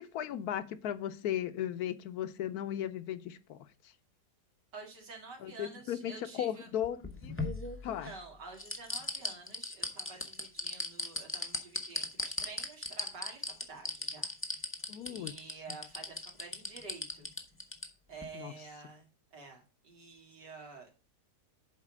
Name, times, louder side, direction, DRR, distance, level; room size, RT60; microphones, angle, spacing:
voice 1, 0.0-3.7 5.4-7.4 7.8-8.1 14.9-15.3 18.3-18.5, left 10 dB, 70° left, 13 dB, 1.1 m, -36 dB
voice 2, 4.7-6.7 7.8-14.6 15.1-17.3 18.1-20.9, right 4 dB, 85° right, 0 dB, 2.9 m, -49 dB
sound 1, 6.8-8.1 8.6-17.9 18.2-18.3, left 2 dB, 15° left, 0.5 m, -36 dB
7.4 x 4.5 x 6.0 m, 0.32 s
omnidirectional pair, 1.8 m